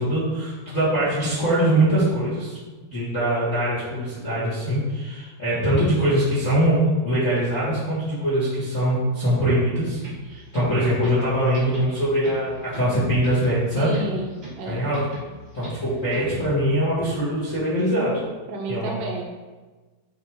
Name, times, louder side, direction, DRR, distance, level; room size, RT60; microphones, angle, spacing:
voice 1, 0.0-2.6 2.9-10.0 10.3-13.9 14.7-15.0 15.5-18.2 18.7-18.9, right 1 dB, 75° left, -10 dB, 0.7 m, -22 dB
sound 1, 10.0-16.5, right 1 dB, 40° right, 1.0 m, -40 dB
voice 2, 13.8-14.9 18.5-19.2, right 2 dB, 75° right, 0 dB, 2.0 m, -31 dB
10.0 x 3.5 x 3.1 m, 1.3 s
omnidirectional pair, 4.6 m